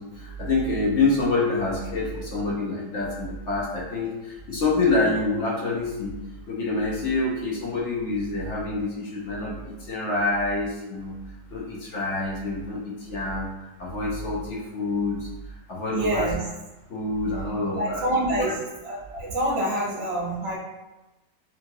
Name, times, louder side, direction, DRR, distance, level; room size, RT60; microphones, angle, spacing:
voice 1, 0.0-6.2 6.5-11.2 11.5-13.5 13.8-15.3 15.7-16.3 16.9-18.5, left 3 dB, 70° left, -4 dB, 0.7 m, -27 dB
voice 2, 15.9-16.4 17.8-18.5 18.8-20.6, right 1 dB, 50° right, -4 dB, 0.8 m, -26 dB
2.8 x 2.7 x 2.6 m, 1.0 s
omnidirectional pair, 1.9 m